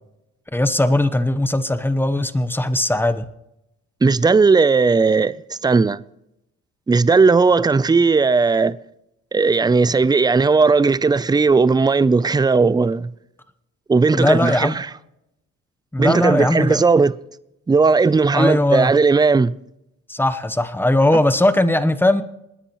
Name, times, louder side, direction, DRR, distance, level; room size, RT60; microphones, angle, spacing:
voice 1, 0.5-3.2 14.1-14.8 15.9-16.8 18.3-18.9 20.1-22.2, left 1 dB, 5° left, 0.9 m, -19 dB
voice 2, 4.0-6.0 6.9-8.8 9.3-13.1 13.9-14.9 16.0-17.1 17.7-19.5, right 4 dB, 15° right, 0.4 m, -16 dB
29.0 x 9.8 x 3.1 m
cardioid pair, 90°, 30 cm